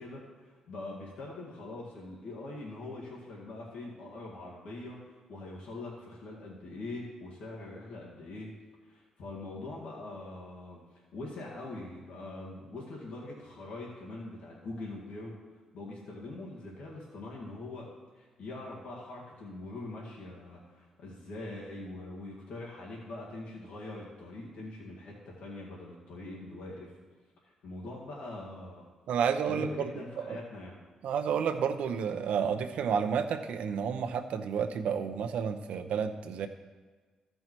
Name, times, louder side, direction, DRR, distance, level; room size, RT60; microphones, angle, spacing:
voice 1, 0.0-8.5 8.8-15.3 15.7-17.9 18.1-26.9 27.4-28.8 29.5-30.8, left 2 dB, 85° left, -4 dB, 2.0 m, -43 dB
voice 2, 29.1-29.9 30.3-30.4 31.0-36.5, right 7 dB, 80° right, 8 dB, 0.7 m, -30 dB
14.0 x 5.5 x 4.5 m, 1.4 s
cardioid pair, 80°, 2 cm